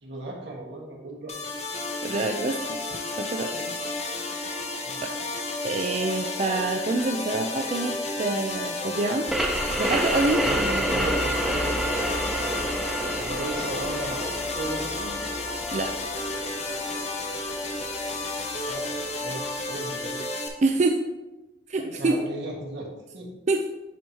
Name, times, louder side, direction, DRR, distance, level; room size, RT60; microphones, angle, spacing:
voice 1, 0.0-1.6 3.5-3.7 4.8-5.2 10.4-12.1 13.1-15.2 18.6-20.2 21.8-22.9 23.1-23.3, right 1 dB, 80° right, -1 dB, 1.6 m, -36 dB
sound 1, 1.3-20.5, left 2 dB, 40° left, 0.8 m, -32 dB
voice 2, 2.0-3.7 5.0-5.1 5.6-9.3 9.8-11.1 15.7-15.9 20.6-21.0 21.7-22.2 23.5-23.6, right 2 dB, 40° right, 4 dB, 0.4 m, -26 dB
sound 2, 9.3-18.6, right 1 dB, ahead, 0.6 m, -29 dB
10.0 x 4.5 x 2.8 m, 1.0 s
head